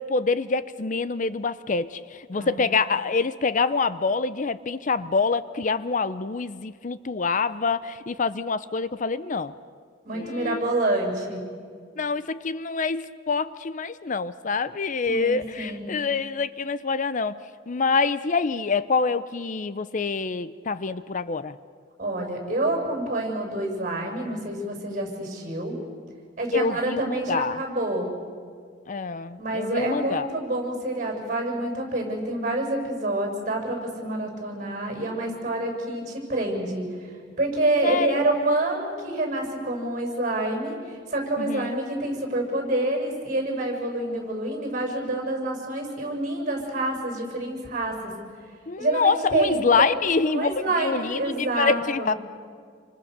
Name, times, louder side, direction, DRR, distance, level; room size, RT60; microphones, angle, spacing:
voice 1, 0.0-9.5 10.1-10.6 12.0-17.4 17.7-21.5 26.5-27.6 28.9-30.3 37.8-38.2 41.4-41.8 48.7-52.1, left 4 dB, 45° left, 15 dB, 0.6 m, -26 dB
voice 2, 2.3-2.7 10.0-11.4 15.1-15.8 22.0-25.8 26.4-28.1 29.4-37.1 37.4-48.1 48.8-49.9 50.3-52.1, right 2 dB, 45° right, 2 dB, 6.6 m, -27 dB
28.0 x 25.5 x 6.7 m, 2.1 s
head